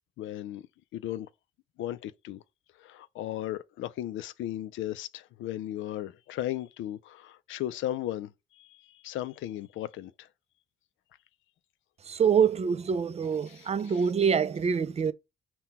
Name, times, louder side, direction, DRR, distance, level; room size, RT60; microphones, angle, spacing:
voice 1, 0.2-0.7 0.9-1.3 1.8-2.4 2.8-10.3 13.5-14.0, left 13 dB, 80° left, 0.4 m, -36 dB
voice 2, 12.0-15.1, right 7 dB, 30° right, 0.4 m, -25 dB
5.8 x 2.2 x 4.1 m
cardioid pair, 90°, 20 cm